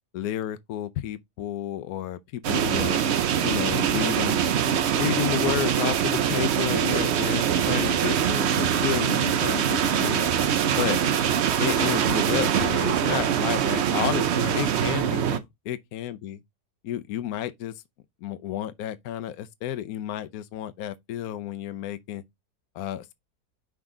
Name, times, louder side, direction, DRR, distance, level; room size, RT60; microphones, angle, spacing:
voice 1, 0.1-3.0 3.4-4.4 4.9-10.3 10.7-11.0 11.6-16.4 16.8-17.8 18.2-22.2 22.7-23.1, left 11 dB, 70° left, 1.0 m, -31 dB
sound 1, 2.4-15.4, right 8 dB, 60° right, 0.7 m, -23 dB
5.9 x 5.2 x 3.7 m
omnidirectional pair, 1.7 m